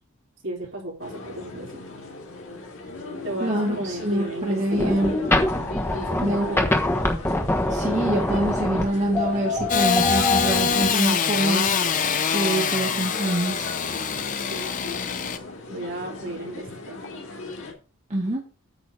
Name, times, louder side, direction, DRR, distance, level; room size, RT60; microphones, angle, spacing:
voice 1, 0.4-1.8 3.2-5.2 5.9-6.7 14.5-15.2 15.7-17.0, right 1 dB, 60° right, -2 dB, 3.6 m, -34 dB
sound 1, 1.0-17.7, left 2 dB, 75° left, 2.9 m, -38 dB
voice 2, 3.4-5.2 6.2-6.6 7.7-11.7 12.3-13.7 18.1-18.4, right 1 dB, 35° right, -2 dB, 1.6 m, -25 dB
sound 2, 4.7-10.9, left 2 dB, 10° left, 1.3 m, -24 dB
Engine starting / Sawing, 9.7-15.4, left 6 dB, 35° left, 0.6 m, -24 dB
8.9 x 4.1 x 6.3 m, 0.36 s
head